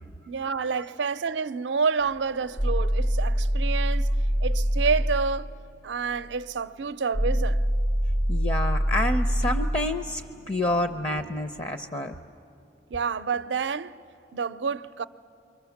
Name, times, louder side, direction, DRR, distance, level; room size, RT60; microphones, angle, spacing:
voice 1, 0.3-4.1 4.4-5.5 5.8-7.6 12.9-13.9 14.3-15.0, right 5 dB, 85° right, 0.5 m, -28 dB
sound 1, 2.0-5.5 7.1-11.3, equal, 75° left, 2.8 m, -25 dB
voice 2, 8.3-12.2, left 1 dB, 35° left, 0.6 m, -28 dB
29.5 x 24.0 x 7.2 m
head